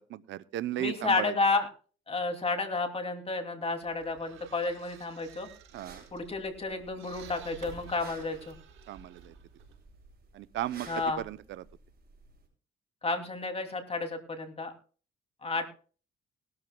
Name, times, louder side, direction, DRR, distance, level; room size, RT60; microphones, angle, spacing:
voice 1, 0.0-1.3 5.7-6.0 8.9-9.3 10.3-10.9 11.2-11.4, right 13 dB, 75° right, 16 dB, 0.6 m, -35 dB
voice 2, 0.8-1.7 2.1-5.5 6.1-8.6 10.9-11.2 13.0-14.7 15.4-15.7, left 3 dB, 30° left, 5 dB, 2.6 m, -31 dB
sound 1, 3.8-10.3, right 7 dB, 90° right, 4.9 m, -53 dB
sound 2, 5.7-12.5, right 4 dB, 50° right, 6.6 m, -53 dB
20.0 x 12.5 x 2.2 m, 0.39 s
cardioid pair, 90°, 20 cm